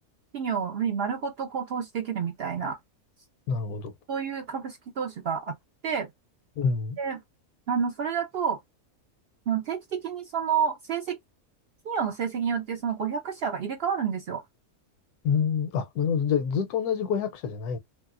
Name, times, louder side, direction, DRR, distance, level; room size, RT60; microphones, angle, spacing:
voice 1, 0.3-2.8 4.1-5.5 5.8-6.1 7.0-7.2 7.7-8.6 9.5-11.2 11.8-14.4, right 7 dB, 80° right, 0.5 m, -29 dB
voice 2, 3.5-3.9 6.6-7.0 15.2-17.8, left 6 dB, 80° left, 1.1 m, -27 dB
3.2 x 2.6 x 2.4 m
omnidirectional pair, 1.6 m